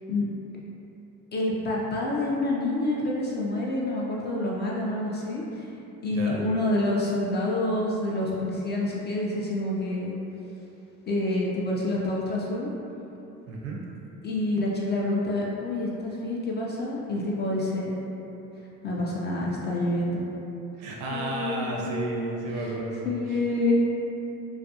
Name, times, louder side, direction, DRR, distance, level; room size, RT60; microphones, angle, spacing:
voice 1, 1.3-5.7 6.0-10.1 11.1-12.7 14.2-17.9 18.8-20.2 21.1-22.8 23.0-23.7, left 1 dB, 25° left, -4 dB, 0.3 m, -28 dB
voice 2, 13.5-13.8 20.8-23.4, right 1 dB, 70° right, -3 dB, 0.6 m, -33 dB
2.4 x 2.3 x 2.6 m, 2.9 s
hypercardioid pair, 55°, 42 cm